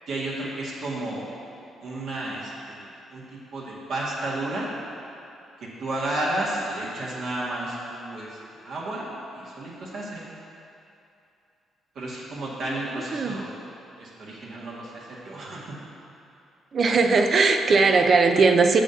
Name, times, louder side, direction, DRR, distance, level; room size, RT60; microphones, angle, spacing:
voice 1, 0.1-1.3 1.8-4.7 5.6-10.2 12.0-13.5 14.0-15.8, right 1 dB, 70° right, -7 dB, 1.8 m, -32 dB
voice 2, 16.7-18.8, right 4 dB, 50° right, 5 dB, 0.5 m, -19 dB
6.8 x 4.9 x 7.0 m, 2.7 s
cardioid pair, 90°, 0 cm